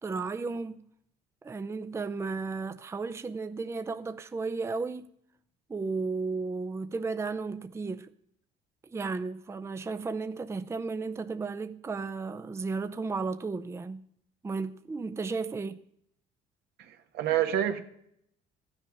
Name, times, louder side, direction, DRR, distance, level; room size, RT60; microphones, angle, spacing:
voice 1, 0.0-0.9 1.4-5.1 5.7-8.1 8.9-14.1 14.4-15.8, right 4 dB, 15° right, 0.5 m, -34 dB
voice 2, 16.8-17.8, right 11 dB, 75° right, 1.4 m, -28 dB
14.5 x 9.7 x 5.9 m
cardioid pair, 110°, 17 cm